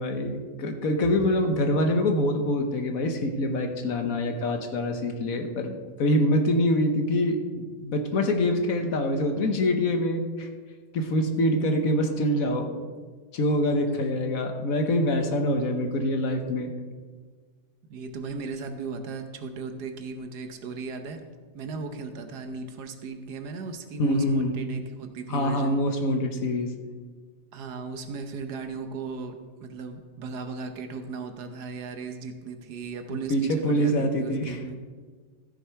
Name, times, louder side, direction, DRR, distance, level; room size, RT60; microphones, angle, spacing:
voice 1, 0.0-10.5 10.9-12.7 13.3-16.7 24.0-24.6 25.3-26.7 33.3-34.6, left 1 dB, 60° left, 5 dB, 1.2 m, -25 dB
voice 2, 17.9-21.2 21.5-25.8 27.5-34.8, right 4 dB, 70° right, 7 dB, 1.4 m, -37 dB
14.5 x 6.6 x 4.6 m, 1.5 s
omnidirectional pair, 1.8 m